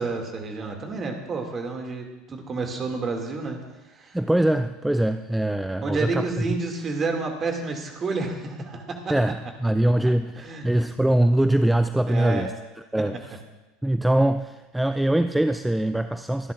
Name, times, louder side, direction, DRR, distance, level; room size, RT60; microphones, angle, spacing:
voice 1, 0.0-3.6 3.9-4.2 5.8-9.1 10.4-10.7 12.1-12.5, right 3 dB, 30° right, 3 dB, 2.2 m, -30 dB
voice 2, 4.1-6.3 9.1-12.5 12.9-13.3 13.8-16.5, right 1 dB, 5° right, 10 dB, 0.4 m, -23 dB
24.0 x 11.0 x 2.5 m, 1.1 s
figure-of-eight pair, 70°, 0 cm